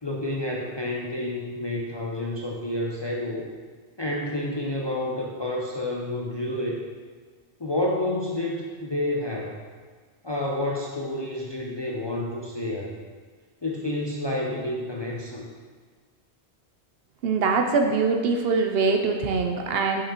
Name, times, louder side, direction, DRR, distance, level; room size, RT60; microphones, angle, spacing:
voice 1, 0.0-3.5 4.0-6.8 7.6-9.6 10.2-12.9 13.6-15.5, left 1 dB, 30° left, -3 dB, 0.5 m, -29 dB
voice 2, 17.2-20.0, right 4 dB, 65° right, 3 dB, 0.8 m, -23 dB
6.6 x 5.5 x 3.0 m, 1.5 s
omnidirectional pair, 1.2 m